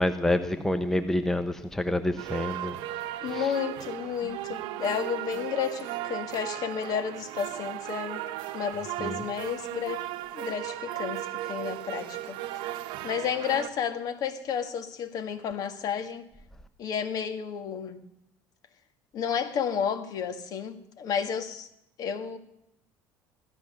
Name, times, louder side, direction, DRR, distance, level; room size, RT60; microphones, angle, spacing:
voice 1, 0.0-2.8 3.3-3.5 9.0-9.2, left 1 dB, 5° left, 9 dB, 0.7 m, -27 dB
sound 1, 2.2-13.7, right 14 dB, 75° right, 0.9 m, -36 dB
voice 2, 3.2-8.2 8.5-10.0 10.3-12.4 13.0-16.2 16.8-18.0 19.1-21.7 22.0-22.4, left 7 dB, 50° left, 8 dB, 1.8 m, -31 dB
16.0 x 13.5 x 6.6 m, 0.78 s
cardioid pair, 135°, 8 cm